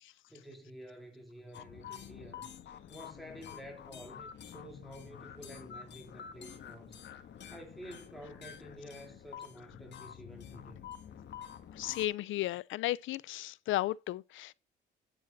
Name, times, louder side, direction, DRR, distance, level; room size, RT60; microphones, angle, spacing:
voice 1, 0.1-2.5 2.9-7.0 7.5-10.8, equal, ahead, 3.0 m, -50 dB
sound 1, 1.5-12.1, left 8 dB, 65° left, 1.6 m, -48 dB
voice 2, 11.7-14.5, left 15 dB, 80° left, 0.5 m, -34 dB
10.0 x 7.3 x 4.0 m
cardioid pair, 90°, 20 cm